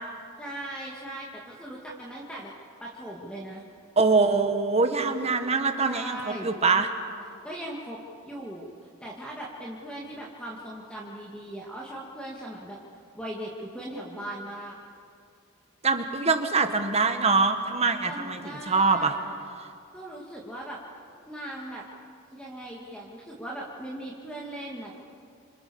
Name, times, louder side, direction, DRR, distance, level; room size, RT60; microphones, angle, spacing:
voice 1, 0.4-2.5 2.8-3.6 5.9-6.5 7.4-8.0 8.2-8.7 9.0-12.8 13.1-14.8 18.0-19.2 19.9-20.8 21.3-21.8 22.3-25.0, right 1 dB, 5° left, -4 dB, 2.2 m, -39 dB
voice 2, 4.0-6.9 15.8-19.1 19.6-19.7, right 4 dB, 30° right, 6 dB, 1.6 m, -24 dB
27.5 x 26.0 x 7.1 m, 2.4 s
head